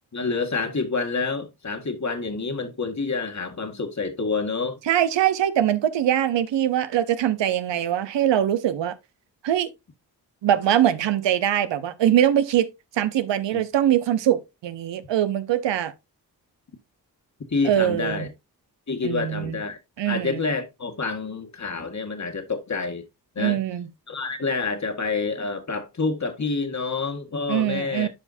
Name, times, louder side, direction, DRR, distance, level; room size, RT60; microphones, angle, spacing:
voice 1, 0.1-4.8 13.5-13.6 17.5-18.3 18.9-19.8 20.1-23.1 23.4-23.6 24.1-28.1, left 4 dB, 40° left, 1.9 m, -28 dB
voice 2, 4.9-9.0 9.4-9.7 10.4-12.7 12.9-15.9 17.6-18.3 19.0-19.6 20.0-20.5 23.4-23.9 27.5-28.1, right 11 dB, 80° right, 0.9 m, -22 dB
11.5 x 5.0 x 2.7 m
supercardioid pair, 45°, 43 cm